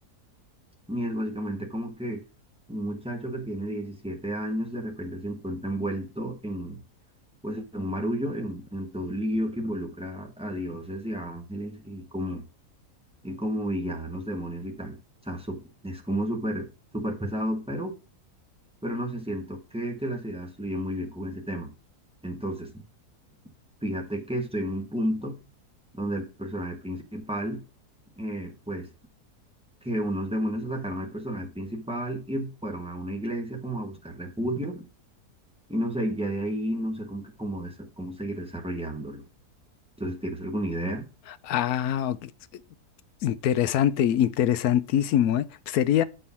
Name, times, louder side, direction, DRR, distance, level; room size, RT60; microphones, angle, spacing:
voice 1, 0.9-2.2 2.7-6.8 7.4-12.4 13.2-15.0 15.2-16.7 16.9-17.9 18.8-21.7 22.2-22.7 23.8-25.4 25.9-27.6 28.2-28.9 29.8-34.8 35.7-39.2 40.0-41.0, equal, 5° right, 1.2 m, -32 dB
voice 2, 41.4-42.3 43.2-46.0, left 10 dB, 70° left, 1.0 m, -24 dB
7.7 x 4.6 x 5.6 m
omnidirectional pair, 1.7 m